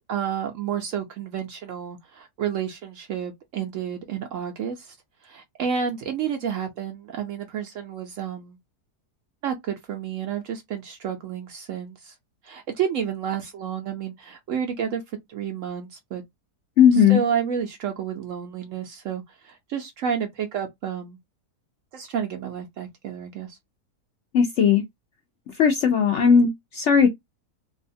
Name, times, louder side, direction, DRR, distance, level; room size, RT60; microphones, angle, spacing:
voice 1, 0.1-5.0 5.2-8.6 9.4-12.1 12.4-15.0 15.3-16.2 16.9-21.2 21.9-23.6, right 8 dB, 70° right, 0.8 m, -30 dB
voice 2, 16.8-17.2 24.3-24.8 25.6-26.5 26.8-27.1, left 7 dB, 70° left, 0.7 m, -17 dB
2.7 x 2.3 x 2.5 m
omnidirectional pair, 1.7 m